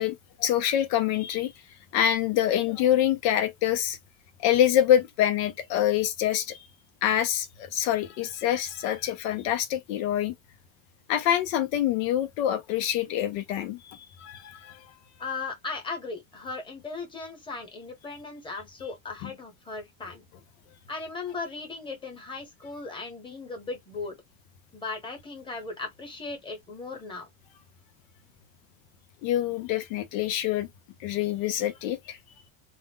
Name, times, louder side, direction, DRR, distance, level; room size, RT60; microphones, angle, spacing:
voice 1, 0.0-1.5 1.9-4.0 4.4-6.6 7.0-10.3 11.1-14.8 19.2-19.3 29.2-30.7 31.0-32.2, left 11 dB, 90° left, 0.7 m, -26 dB
voice 2, 15.2-20.2 20.9-24.2 24.7-27.3, left 3 dB, 10° left, 1.1 m, -37 dB
2.5 x 2.0 x 3.5 m
cardioid pair, 140°, 39 cm